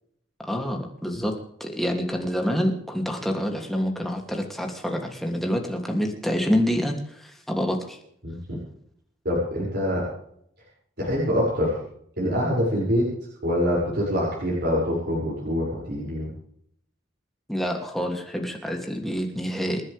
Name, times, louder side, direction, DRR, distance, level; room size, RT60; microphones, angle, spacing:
voice 1, 0.4-1.3 1.6-8.0 17.5-19.8, equal, ahead, 2 dB, 2.9 m, -27 dB
voice 2, 8.2-8.6 9.2-10.1 11.0-11.7 12.2-13.1 13.4-16.3, equal, 60° right, -6 dB, 6.8 m, -25 dB
28.0 x 10.5 x 3.6 m, 0.69 s
head